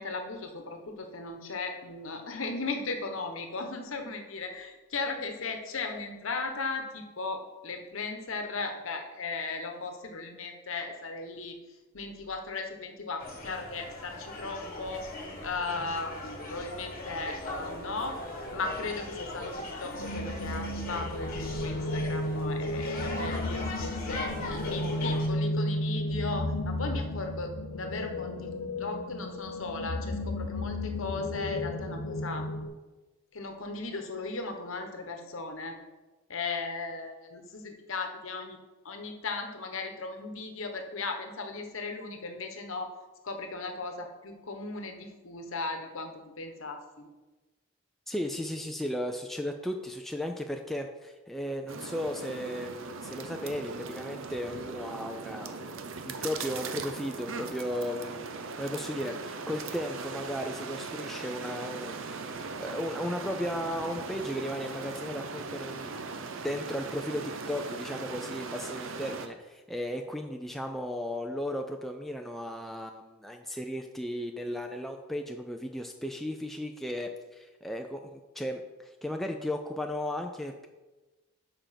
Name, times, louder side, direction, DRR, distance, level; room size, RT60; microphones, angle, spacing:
voice 1, 0.0-11.6 11.9-15.1 15.4-18.2 18.5-19.5 19.8-28.5 28.8-32.5 33.3-35.8 36.3-38.6 38.8-43.0 43.2-47.1, left 3 dB, 65° left, 5 dB, 1.1 m, -37 dB
sound 1, 13.2-25.3, left 2 dB, 40° left, 1.4 m, -39 dB
sound 2, 19.9-32.7, left 1 dB, 90° left, 0.8 m, -33 dB
voice 2, 48.1-58.3 58.6-66.0 66.4-80.7, equal, ahead, 3 dB, 0.4 m, -35 dB
sound 3, 51.7-69.3, right 4 dB, 60° right, 0.6 m, -39 dB
7.0 x 5.1 x 5.8 m, 1.2 s
head